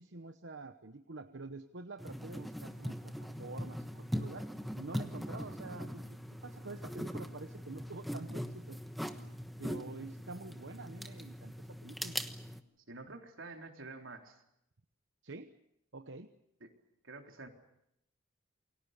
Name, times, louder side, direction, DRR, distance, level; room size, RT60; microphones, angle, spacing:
voice 1, 0.0-4.5 4.8-8.8 9.6-12.2 15.2-15.5 15.9-16.3, right 3 dB, 70° right, 8 dB, 1.0 m, -47 dB
sound 1, 2.0-12.6, equal, ahead, 1.2 m, -41 dB
voice 2, 12.9-14.4 16.6-16.7 17.0-17.5, right 3 dB, 90° right, 3 dB, 3.7 m, -48 dB
28.5 x 23.0 x 6.7 m, 0.81 s
head